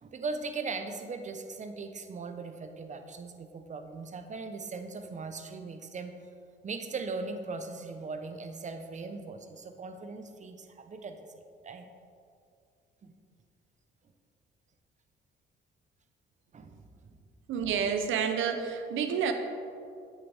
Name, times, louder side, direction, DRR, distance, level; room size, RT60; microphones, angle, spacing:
voice 1, 0.0-6.1 6.6-11.3 11.6-11.9 13.0-13.1 16.5-17.2, right 4 dB, 35° right, 7 dB, 0.8 m, -39 dB
voice 2, 17.5-19.3, right 7 dB, 80° right, 7 dB, 0.7 m, -29 dB
8.7 x 6.6 x 3.5 m, 2.4 s
cardioid pair, 90°, 20 cm